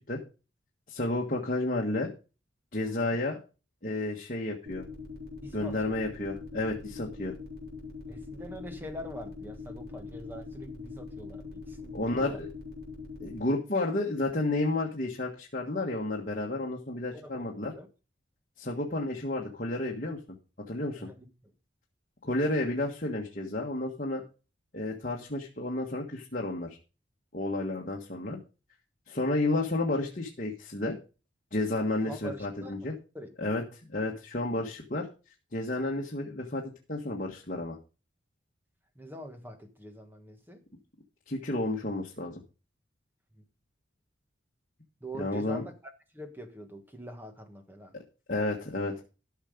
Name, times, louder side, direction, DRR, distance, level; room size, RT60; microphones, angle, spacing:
voice 1, 0.9-2.1 2.7-3.4 3.8-4.9 5.5-7.3 11.9-12.5 13.2-17.7 18.6-20.2 20.7-21.1 22.2-24.2 24.7-26.8 27.3-28.4 29.1-30.9 31.5-32.9 33.4-35.1 35.5-37.8 41.3-42.4 45.2-45.6 48.3-49.0, left 2 dB, 40° left, -1 dB, 1.5 m, -31 dB
sound 1, 4.7-13.4, left 4 dB, 50° right, 3.8 m, -42 dB
voice 2, 5.4-6.0 8.1-12.4 17.1-17.9 21.0-21.3 32.1-33.3 38.9-40.6 45.0-45.7 46.1-48.0, equal, 10° right, 6 dB, 1.4 m, -44 dB
13.0 x 5.9 x 5.1 m, 0.32 s
head